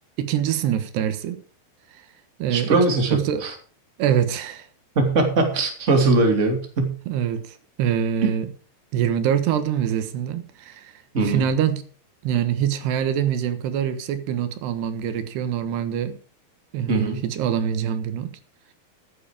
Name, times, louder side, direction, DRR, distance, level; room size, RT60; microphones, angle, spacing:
voice 1, 0.2-1.4 2.4-2.8 3.1-3.4 4.0-4.7 7.1-8.5 8.9-10.9 11.2-11.8 12.2-16.2 16.7-18.3, right 9 dB, 90° right, 10 dB, 3.4 m, -24 dB
voice 2, 2.5-3.5 4.9-7.0 8.2-8.3 11.1-11.5 16.9-17.2, right 3 dB, 20° right, 3 dB, 2.5 m, -21 dB
14.5 x 9.6 x 4.9 m, 0.39 s
omnidirectional pair, 4.6 m